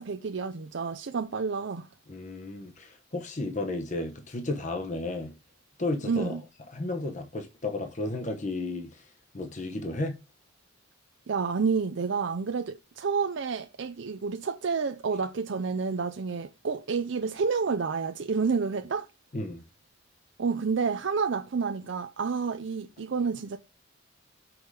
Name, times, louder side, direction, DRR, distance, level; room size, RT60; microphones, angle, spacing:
voice 1, 0.0-1.9 6.0-6.4 11.3-19.1 20.4-23.6, right 5 dB, 60° right, 0.5 m, -29 dB
voice 2, 2.1-5.3 5.8-6.3 6.7-9.1 9.3-10.2 19.3-19.6, left 2 dB, 40° left, 1.0 m, -33 dB
6.3 x 4.9 x 4.8 m
head